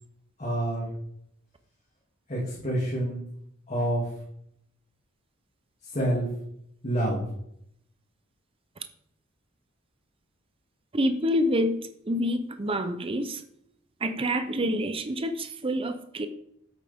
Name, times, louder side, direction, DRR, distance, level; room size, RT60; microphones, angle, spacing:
voice 1, 0.4-0.9 2.3-3.2 3.7-4.1 5.8-6.3 6.8-7.2, right 1 dB, 35° left, 2.5 m, -27 dB
voice 2, 10.9-11.8 12.1-13.4 14.0-16.3, equal, 25° right, 0.6 m, -27 dB
8.5 x 8.2 x 3.5 m
head